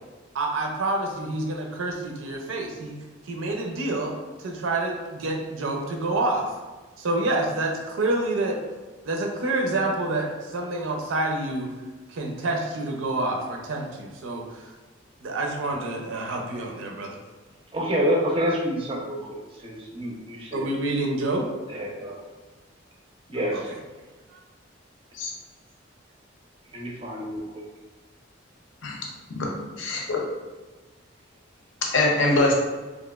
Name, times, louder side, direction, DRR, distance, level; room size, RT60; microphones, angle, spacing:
voice 1, 0.3-2.9 3.3-4.1 4.4-6.5 7.0-8.6 9.0-11.7 12.1-14.6 15.2-17.2 20.5-21.5 23.5-23.8, right 2 dB, 85° right, 1 dB, 0.5 m, -28 dB
voice 2, 17.7-19.4 19.6-20.7 21.7-22.2 23.3-23.6 26.7-27.6, equal, 25° right, -1 dB, 0.4 m, -27 dB
voice 3, 29.3-30.2 31.9-32.5, left 2 dB, 75° left, 0 dB, 0.5 m, -23 dB
3.0 x 2.3 x 2.2 m, 1.3 s
head